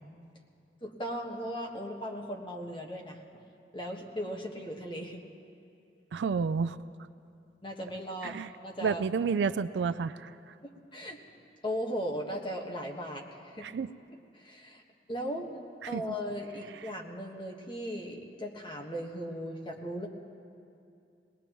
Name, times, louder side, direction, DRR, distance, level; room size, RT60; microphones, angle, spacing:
voice 1, 0.8-3.2 3.7-5.2 7.6-8.4 8.6-9.1 10.6-11.2 11.6-13.7 14.3-14.8 15.1-15.6 15.9-20.1, equal, 30° left, -1 dB, 1.4 m, -37 dB
voice 2, 6.1-6.8 8.2-8.5 8.8-10.3 13.6-13.9 15.9-16.0, right 5 dB, 75° right, 13 dB, 0.3 m, -30 dB
21.5 x 19.5 x 3.0 m, 2.5 s
head